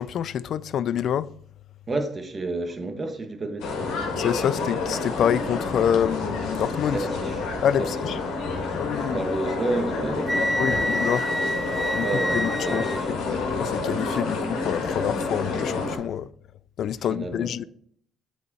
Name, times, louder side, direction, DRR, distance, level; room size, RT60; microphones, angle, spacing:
voice 1, 0.0-1.3 4.2-7.1 7.6-8.2 8.7-9.2 10.6-11.2 11.9-12.1 12.3-12.8 13.1-16.3 16.8-17.6, left 9 dB, 65° left, 0.3 m, -27 dB
voice 2, 1.9-3.8 6.9-7.4 7.8-7.9 9.1-10.9 12.0-13.1 17.1-17.5, right 2 dB, 30° right, 1.3 m, -30 dB
sound 1, 3.6-16.0, left 3 dB, 80° left, 1.7 m, -29 dB
Wind instrument woodwind instrument, 10.3-13.1, equal, ahead, 0.5 m, -27 dB
8.1 x 4.7 x 4.1 m
cardioid pair, 85°, 0 cm